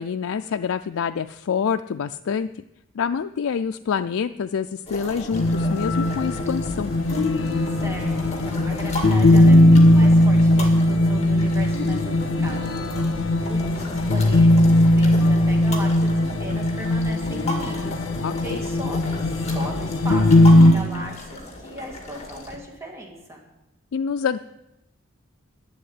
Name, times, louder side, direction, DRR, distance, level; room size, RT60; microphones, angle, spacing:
voice 1, 0.0-2.5 3.0-6.9 18.1-18.6 23.9-24.4, left 6 dB, 80° left, 8 dB, 0.4 m, -26 dB
sound 1, 4.8-22.6, left 1 dB, 30° left, 2.0 m, -36 dB
sound 2, 5.3-20.7, left 1 dB, 65° left, 1.3 m, -18 dB
voice 2, 7.7-23.4, right 1 dB, 15° right, 0 dB, 2.0 m, -38 dB
11.0 x 7.9 x 9.7 m, 0.91 s
head